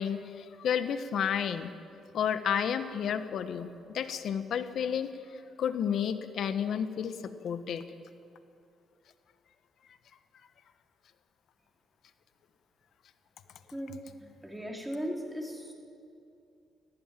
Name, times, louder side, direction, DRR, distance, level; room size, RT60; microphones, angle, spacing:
voice 1, 0.0-1.7 2.1-5.1 5.6-7.8, left 8 dB, 70° left, 11 dB, 1.2 m, -31 dB
voice 2, 13.7-15.7, equal, 5° right, 1 dB, 3.8 m, -38 dB
19.0 x 15.0 x 9.1 m, 2.6 s
cardioid pair, 90°, 0 cm